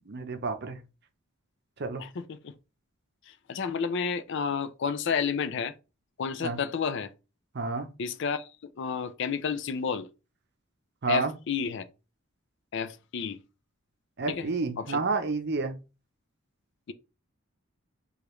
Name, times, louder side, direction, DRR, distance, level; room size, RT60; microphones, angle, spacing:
voice 1, 0.1-0.8 1.8-2.0 6.4-6.6 7.5-7.9 11.0-11.3 14.2-15.8, right 3 dB, 55° right, 0.6 m, -30 dB
voice 2, 2.0-2.5 3.3-5.7 6.2-7.1 8.0-8.5 8.7-10.1 11.1-11.8 12.7-13.4 14.3-14.5 14.8-15.0, left 6 dB, 60° left, 0.4 m, -31 dB
4.9 x 2.4 x 3.1 m
head